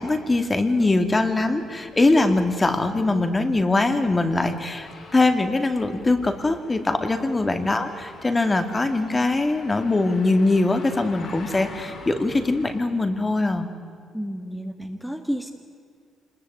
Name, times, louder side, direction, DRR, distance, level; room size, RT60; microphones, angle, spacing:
voice 1, 0.0-13.7, left 2 dB, 20° left, 6 dB, 2.3 m, -22 dB
sound 1, 1.0-12.8, left 3 dB, 65° left, 5.4 m, -45 dB
voice 2, 14.1-15.5, equal, ahead, 3 dB, 1.6 m, -31 dB
25.5 x 21.0 x 9.3 m, 2.1 s
cardioid pair, 90°, 0 cm